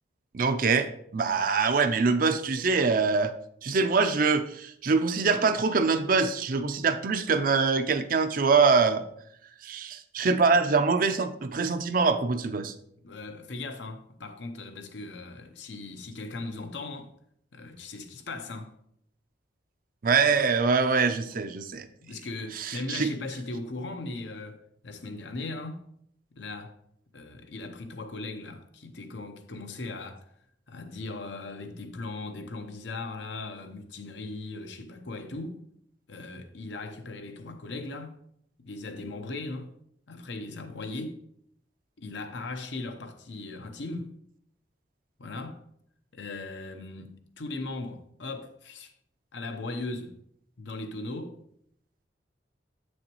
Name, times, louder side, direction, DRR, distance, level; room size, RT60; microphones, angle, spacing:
voice 1, 0.3-3.3 3.6-9.0 9.6-12.7 20.0-21.9 22.6-23.1, right 4 dB, 50° right, 0.5 m, -24 dB
voice 2, 13.0-17.1 17.5-18.7 22.0-25.8 26.4-26.8 27.1-30.3 30.7-35.6 36.1-38.2 38.6-39.7 40.1-41.2 42.0-44.1 45.2-45.6 46.1-48.9 49.3-50.2 50.6-51.4, left 2 dB, 75° left, 0.8 m, -38 dB
7.9 x 6.4 x 3.0 m
head